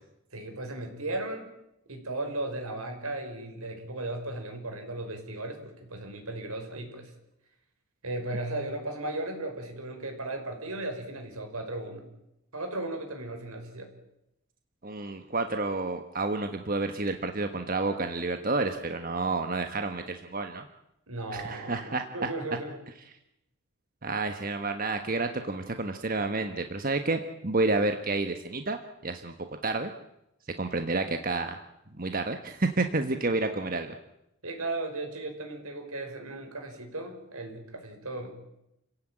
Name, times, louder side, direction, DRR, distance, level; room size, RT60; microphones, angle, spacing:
voice 1, 0.3-1.5 1.9-7.1 8.0-12.0 12.5-13.9 21.1-22.8 34.4-38.4, right 2 dB, 85° right, 4 dB, 5.7 m, -36 dB
voice 2, 14.8-20.7 21.3-22.0 24.0-29.3 29.6-29.9 30.6-31.6 32.0-34.0, right 3 dB, 40° right, 6 dB, 1.3 m, -30 dB
29.5 x 16.0 x 9.2 m, 0.86 s
head